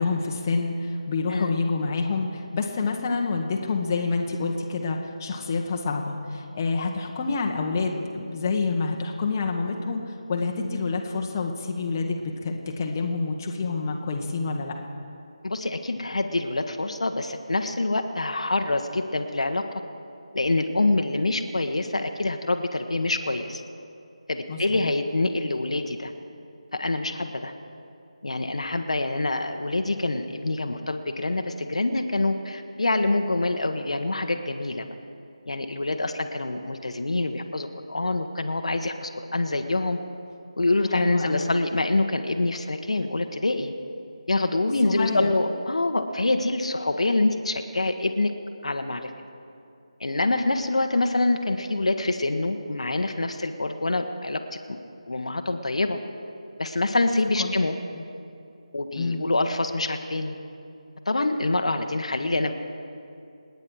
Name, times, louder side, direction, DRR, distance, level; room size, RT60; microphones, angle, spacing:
voice 1, 0.0-14.7 24.5-24.9 40.9-41.5 44.8-45.3 57.4-57.5 57.9-58.0 59.0-59.2, left 4 dB, 30° left, 1 dB, 1.2 m, -28 dB
voice 2, 1.3-1.6 15.4-19.6 20.3-23.6 24.3-26.1 26.7-27.5 28.2-34.8 35.5-40.0 40.6-43.7 44.3-48.3 48.6-49.1 50.0-54.4 54.7-54.8 55.1-56.0 56.6-57.8 58.7-60.4 61.1-62.5, left 2 dB, 65° left, 6 dB, 1.2 m, -26 dB
27.5 x 9.7 x 4.8 m, 2.6 s
figure-of-eight pair, 160°, 4 cm